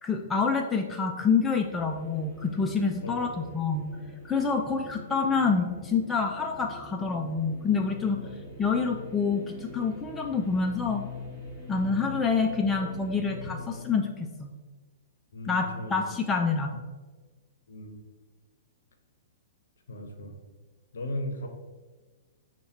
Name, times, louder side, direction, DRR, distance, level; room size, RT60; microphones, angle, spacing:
voice 1, 0.0-3.8 4.2-8.2 8.6-11.0 11.7-14.1 14.4-14.5 15.5-16.8, left 5 dB, 15° left, 3 dB, 0.4 m, -27 dB
sound 1, 1.6-13.8, left 4 dB, 20° right, 1.3 m, -43 dB
voice 2, 3.0-3.4 4.5-4.8 8.2-8.3 11.8-12.0 15.3-15.9 17.7-18.0 19.9-20.4 20.9-21.5, left 1 dB, 65° left, 4 dB, 0.7 m, -37 dB
5.4 x 2.2 x 4.3 m, 1.3 s
figure-of-eight pair, 110°, 0 cm